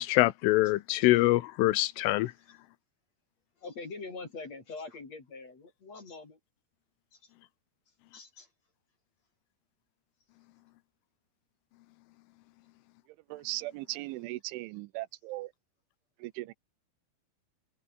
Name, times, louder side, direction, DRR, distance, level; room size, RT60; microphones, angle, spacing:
voice 1, 0.0-2.3, left 18 dB, 85° left, 3.4 m, -24 dB
voice 2, 3.6-6.4 7.1-7.2 8.1-8.5, left 3 dB, 35° left, 5.0 m, -43 dB
voice 3, 13.3-15.5 16.2-16.5, right 19 dB, 80° right, 3.1 m, -38 dB
omnidirectional pair, 5.7 m